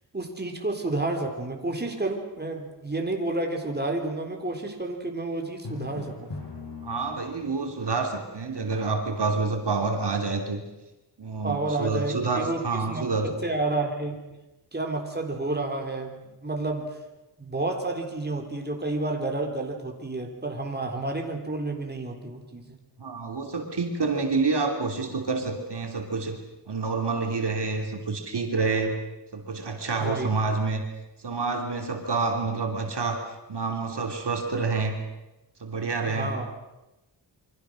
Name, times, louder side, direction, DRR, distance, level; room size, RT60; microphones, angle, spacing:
voice 1, 0.1-6.3 11.4-14.2 14.7-16.9 17.4-22.8 30.0-30.3 36.0-36.5, right 2 dB, 25° right, 2 dB, 3.8 m, -30 dB
Drum, 5.6-7.7, left 4 dB, 80° left, 6.9 m, -39 dB
voice 2, 6.8-10.6 11.2-13.4 23.0-26.4 26.7-29.0 29.3-30.8 31.2-33.2 33.5-35.0 35.6-36.3, right 4 dB, 70° right, 3 dB, 3.2 m, -28 dB
28.0 x 24.5 x 6.5 m, 1.0 s
wide cardioid pair, 115°, 42 cm